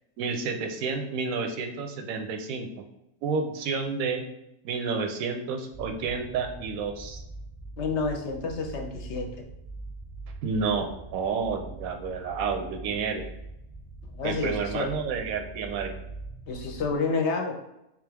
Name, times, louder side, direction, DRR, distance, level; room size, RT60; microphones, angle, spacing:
voice 1, 0.2-2.7 3.2-4.2 4.6-7.2 10.4-13.2 14.2-15.9, right 5 dB, 90° right, 5 dB, 1.0 m, -30 dB
sound 1, 5.7-17.0, right 2 dB, 55° right, 0.4 m, -42 dB
voice 2, 7.8-9.3 14.1-14.9 16.5-17.5, left 4 dB, 65° left, 3 dB, 0.8 m, -29 dB
3.6 x 3.0 x 3.3 m, 0.85 s
omnidirectional pair, 1.4 m